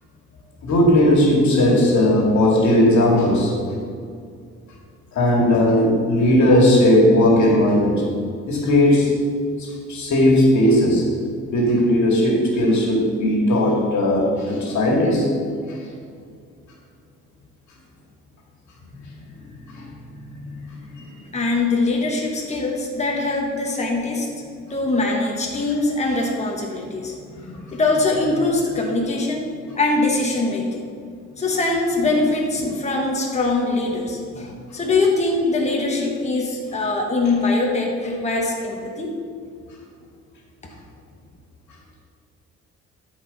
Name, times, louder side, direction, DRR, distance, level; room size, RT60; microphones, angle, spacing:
voice 1, 0.6-3.5 5.1-8.0 8.5-9.1 9.6-11.1 11.5-15.3 15.7-15.8 19.7-19.9 20.1-20.4 20.9-21.1 27.4-27.6 32.6-32.7, left 1 dB, 70° left, -1 dB, 2.1 m, -17 dB
voice 2, 21.3-24.3 24.7-27.1 27.7-29.5 29.7-30.8 31.4-39.1, left 2 dB, 20° left, -1 dB, 1.3 m, -22 dB
12.5 x 4.9 x 4.1 m, 2.3 s
cardioid pair, 90°, 30 cm